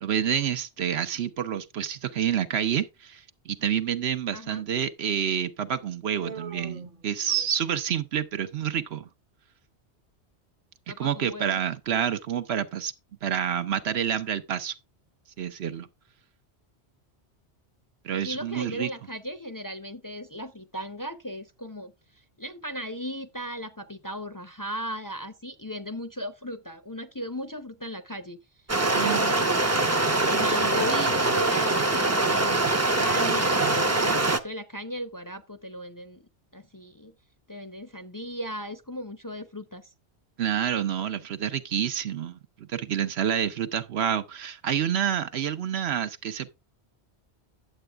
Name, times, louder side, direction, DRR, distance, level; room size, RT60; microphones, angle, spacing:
voice 1, 0.0-9.1 11.0-12.9 13.2-14.7 15.4-15.9 18.0-18.9 28.9-29.2 40.4-46.5, right 9 dB, 70° right, 1.0 m, -28 dB
voice 2, 4.3-4.6 10.9-11.6 18.1-21.9 22.4-28.4 29.0-29.6 30.2-32.6 32.9-36.2 36.5-37.1 37.5-39.9, equal, 20° left, 0.6 m, -36 dB
Human voice, 6.2-7.9, right 5 dB, 45° right, 1.1 m, -42 dB
Stream, 28.7-34.4, right 2 dB, 20° right, 0.6 m, -23 dB
10.0 x 7.8 x 3.4 m
omnidirectional pair, 1.1 m